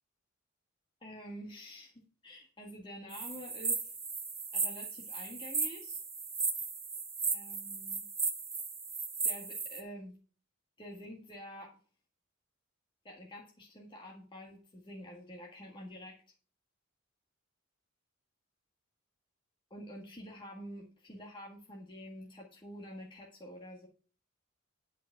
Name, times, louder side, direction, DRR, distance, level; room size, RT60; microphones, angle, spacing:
voice 1, 1.0-3.9 4.5-6.0 7.3-8.0 9.3-10.2 10.8-11.8 13.0-16.2 19.7-23.9, equal, 25° left, -2 dB, 1.9 m, -48 dB
sound 1, 3.1-9.8, right 4 dB, 15° right, 1.4 m, -36 dB
10.5 x 5.3 x 6.0 m, 0.40 s
head